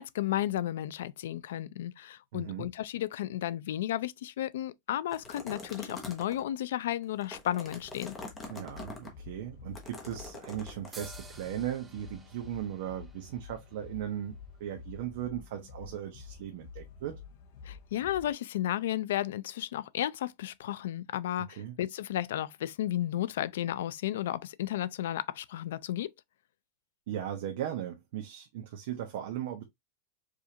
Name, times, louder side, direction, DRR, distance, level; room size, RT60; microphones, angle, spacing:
voice 1, 0.0-8.2 17.6-26.1, left 12 dB, 75° left, 0.4 m, -33 dB
voice 2, 2.3-2.7 8.5-17.2 21.6-21.8 27.1-29.6, right 11 dB, 55° right, 0.8 m, -37 dB
sound 1, 5.1-6.4 7.0-9.1 9.8-10.9, left 3 dB, 10° left, 0.8 m, -44 dB
sound 2, 8.0-18.3, left 5 dB, 40° left, 0.8 m, -49 dB
sound 3, 10.9-14.5, right 3 dB, 10° right, 0.4 m, -52 dB
4.9 x 2.5 x 2.8 m
supercardioid pair, 180°, 0 cm